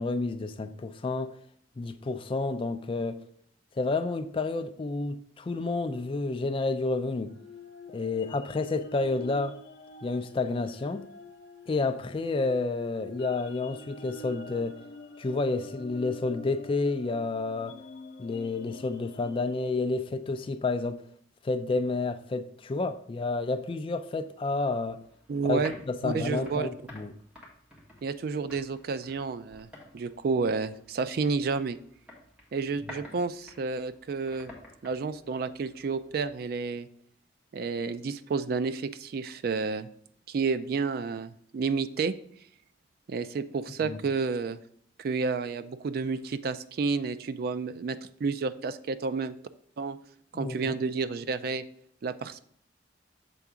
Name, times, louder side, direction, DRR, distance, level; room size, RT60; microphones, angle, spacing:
voice 1, 0.0-1.3 1.8-3.2 3.8-7.3 7.9-9.6 10.0-11.1 11.7-14.8 15.2-17.8 18.2-21.0 21.4-25.0 25.4-25.6 25.9-27.1 43.8-44.0 50.3-50.8, left 3 dB, 30° left, 0.3 m, -30 dB
sound 1, 7.3-19.9, left 2 dB, 75° left, 0.6 m, -46 dB
sound 2, 24.9-36.3, left 2 dB, 5° right, 1.4 m, -52 dB
voice 2, 25.3-25.7 26.0-26.7 28.0-29.7 29.9-31.8 32.5-34.5 34.8-36.9 37.5-39.9 40.3-42.1 43.1-44.6 45.0-49.3 49.8-50.0 50.3-51.6 52.0-52.4, right 4 dB, 55° right, 0.3 m, -30 dB
6.9 x 3.5 x 4.9 m
head